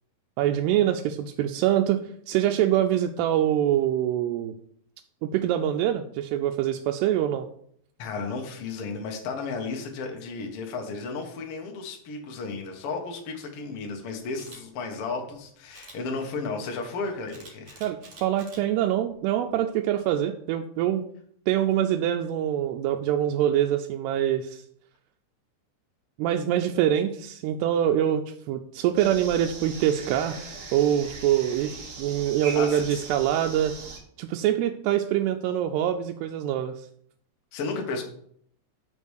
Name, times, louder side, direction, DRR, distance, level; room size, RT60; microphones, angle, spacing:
voice 1, 0.4-2.0 2.3-4.6 5.2-7.5 17.8-21.0 21.5-24.6 26.2-30.4 30.7-33.7 34.2-36.9, right 11 dB, 85° right, 4 dB, 2.6 m, -24 dB
voice 2, 8.0-17.8 32.5-33.0 37.5-38.0, left 4 dB, 85° left, 2 dB, 1.2 m, -33 dB
Camera, 14.3-14.6 15.7-16.0 17.3-18.6 19.1-19.4, right 2 dB, 45° right, 2.8 m, -47 dB
sound 1, 29.0-34.0, right 4 dB, 65° right, 1.4 m, -40 dB
5.9 x 5.4 x 6.3 m, 0.66 s
omnidirectional pair, 4.7 m